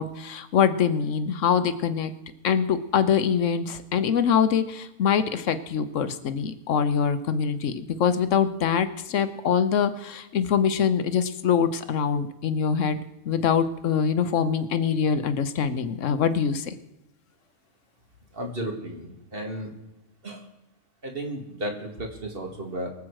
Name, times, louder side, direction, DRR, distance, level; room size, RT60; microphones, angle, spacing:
voice 1, 0.0-2.1 2.4-13.0 13.3-16.7, left 7 dB, 80° left, 12 dB, 1.2 m, -24 dB
voice 2, 18.3-19.7 20.2-20.4 21.0-22.9, right 1 dB, 50° right, 2 dB, 2.2 m, -34 dB
23.0 x 7.7 x 4.7 m, 0.96 s
omnidirectional pair, 1.3 m